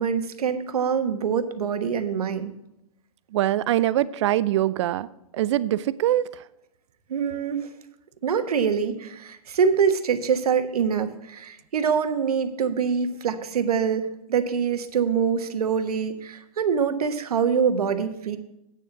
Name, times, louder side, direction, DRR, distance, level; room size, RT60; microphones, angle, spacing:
voice 1, 0.0-2.5 7.1-7.7 8.2-18.4, right 6 dB, 75° right, 8 dB, 1.2 m, -24 dB
voice 2, 3.3-5.1 5.3-6.4, right 13 dB, 50° right, 17 dB, 0.5 m, -23 dB
9.0 x 6.8 x 5.8 m, 0.85 s
hypercardioid pair, 135°, 20 cm